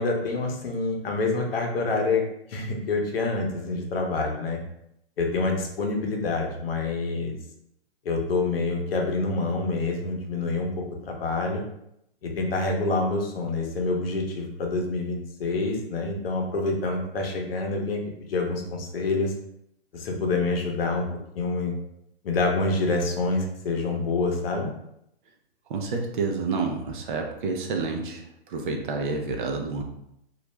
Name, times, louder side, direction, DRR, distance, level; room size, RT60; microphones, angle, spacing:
voice 1, 0.0-2.2 2.5-4.6 5.2-7.3 8.0-11.6 12.2-18.0 18.3-19.3 19.9-21.1 21.4-21.7 22.2-24.7, left 3 dB, 65° left, 1 dB, 0.8 m, -27 dB
voice 2, 25.7-29.8, right 4 dB, 50° right, 2 dB, 0.5 m, -29 dB
2.4 x 2.1 x 3.0 m, 0.78 s
hypercardioid pair, 135°, 31 cm